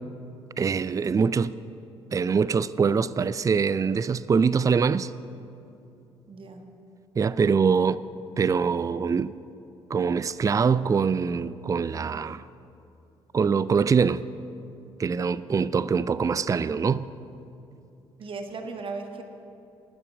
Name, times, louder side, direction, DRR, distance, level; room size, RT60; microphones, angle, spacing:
voice 1, 0.6-1.5 2.1-5.1 7.2-8.0 8.4-9.3 9.9-12.4 13.3-14.2 15.0-17.1, right 5 dB, 25° right, 0.4 m, -23 dB
voice 2, 6.3-6.6 18.2-19.2, right 4 dB, 45° right, 1.5 m, -36 dB
12.0 x 9.8 x 9.3 m
hypercardioid pair, 45°, 13 cm